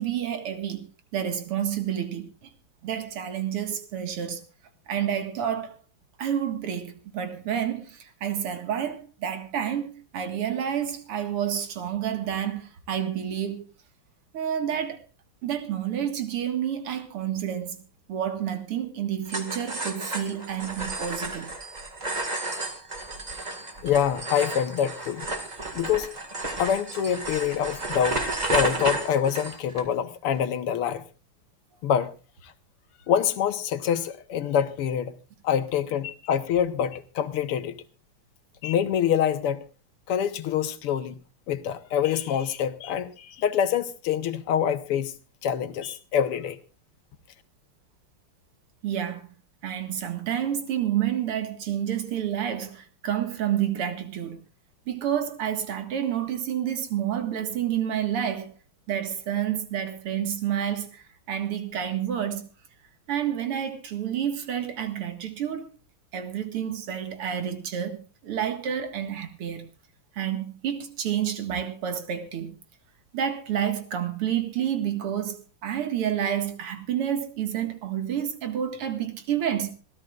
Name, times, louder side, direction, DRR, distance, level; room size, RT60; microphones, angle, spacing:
voice 1, 0.0-2.5 2.8-4.4 4.9-5.7 6.2-13.6 14.3-15.0 15.4-17.8 18.1-21.5 48.8-49.2 49.6-54.4 54.9-58.5 58.9-62.4 63.1-65.7 66.1-68.0 68.2-69.6 70.1-72.5 73.1-79.7, right 9 dB, 90° right, 2.6 m, -29 dB
sound 1, 19.3-29.8, right 2 dB, 20° right, 1.8 m, -32 dB
voice 2, 23.8-25.3 25.7-26.1 26.6-31.0 31.8-32.1 32.4-32.5 33.1-35.2 35.4-37.8 38.6-39.6 40.1-41.2 41.5-45.1 45.4-46.6, left 9 dB, 85° left, 2.0 m, -26 dB
27.0 x 13.5 x 2.5 m
omnidirectional pair, 2.4 m